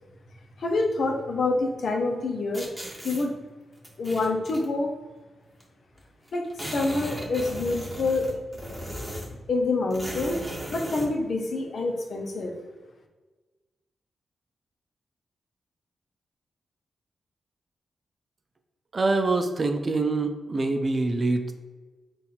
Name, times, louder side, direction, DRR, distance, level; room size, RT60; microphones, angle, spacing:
voice 1, 0.6-2.7 3.0-3.3 4.0-4.9 6.3-8.3 9.5-10.4 10.7-12.5, left 3 dB, 65° left, 3 dB, 0.7 m, -26 dB
sound 1, 2.5-3.2 3.8-4.7 5.6-5.7 5.9-6.0 6.3-9.4 9.9-11.1, equal, 5° right, 1.4 m, -37 dB
voice 2, 18.9-21.5, right 3 dB, 45° right, 6 dB, 0.5 m, -25 dB
4.1 x 2.4 x 4.1 m, 1.3 s
supercardioid pair, 45°, 0 cm